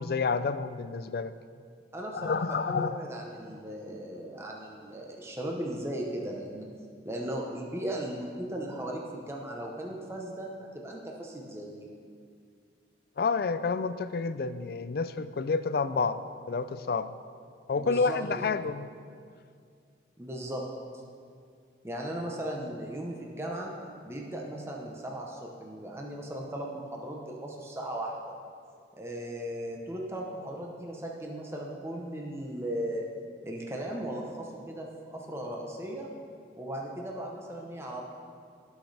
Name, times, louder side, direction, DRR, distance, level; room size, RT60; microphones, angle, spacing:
voice 1, 0.0-1.3 2.1-3.0 13.2-16.2 16.5-17.1 17.7-18.9, left 4 dB, 55° left, 13 dB, 0.4 m, -29 dB
voice 2, 1.9-6.7 7.0-10.5 10.7-11.9 17.8-18.4 20.2-20.7 21.8-23.7 24.0-28.3 28.9-33.1 33.4-36.1 36.6-38.0, right 1 dB, 15° right, -1 dB, 0.9 m, -37 dB
17.0 x 6.4 x 3.4 m, 2.2 s
head